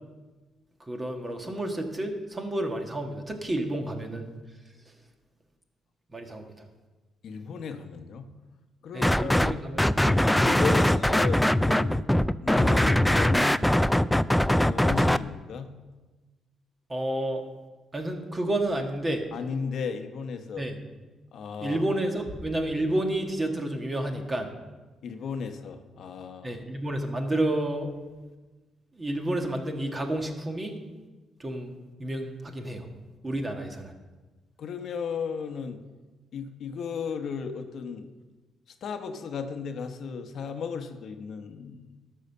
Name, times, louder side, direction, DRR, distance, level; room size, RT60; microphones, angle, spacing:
voice 1, 0.9-4.3 6.1-6.5 8.9-10.2 16.9-17.4 17.9-19.2 20.6-20.8 21.6-24.5 26.4-27.9 29.0-30.8 31.4-31.7 32.0-32.9 33.2-33.9, right 1 dB, 25° right, 3 dB, 1.6 m, -30 dB
voice 2, 7.2-8.3 8.8-9.6 10.0-12.0 12.4-13.6 14.7-15.7 19.3-20.7 21.3-21.8 25.0-26.6 34.6-35.8 36.3-38.1 38.8-41.9, left 6 dB, 65° left, 7 dB, 0.9 m, -35 dB
sound 1, 9.0-9.5 9.8-15.2, left 1 dB, 5° left, 0.3 m, -21 dB
12.0 x 5.6 x 6.7 m, 1.2 s
cardioid pair, 90°, 0 cm